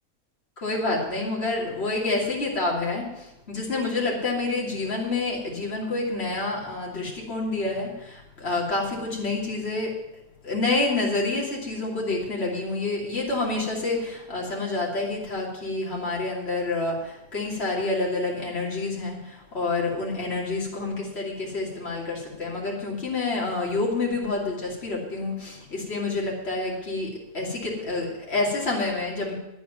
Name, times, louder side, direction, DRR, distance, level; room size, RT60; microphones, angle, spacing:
voice 1, 0.6-9.9 10.4-29.3, left 3 dB, 45° left, -3 dB, 3.2 m, -28 dB
10.0 x 8.6 x 9.4 m, 0.90 s
omnidirectional pair, 1.5 m